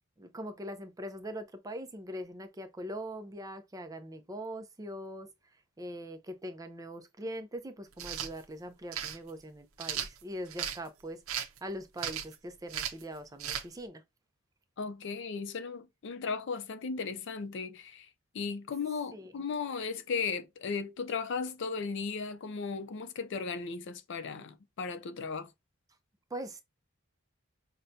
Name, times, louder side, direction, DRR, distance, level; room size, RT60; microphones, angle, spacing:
voice 1, 0.2-5.3 5.8-14.0 19.1-19.3 26.3-26.6, equal, 15° right, 0.4 m, -42 dB
sound 1, 7.9-8.3 8.9-9.2 9.8-10.8 11.3-11.6 12.0-12.4 12.7-13.0 13.4-13.6, right 9 dB, 85° right, 0.5 m, -36 dB
voice 2, 14.8-18.1 18.3-25.5, left 5 dB, 60° left, 0.5 m, -36 dB
5.5 x 2.2 x 2.6 m
head